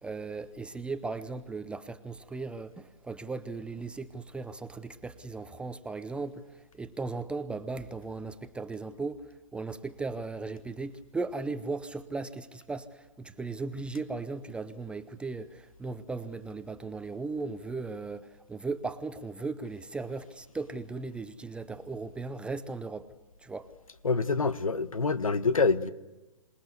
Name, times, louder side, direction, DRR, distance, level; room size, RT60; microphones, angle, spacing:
voice 1, 0.0-23.1 23.4-23.7, right 3 dB, 5° right, 0.8 m, -37 dB
voice 2, 24.0-25.9, left 4 dB, 90° left, 1.4 m, -26 dB
27.0 x 20.0 x 8.2 m
hypercardioid pair, 135°, 17 cm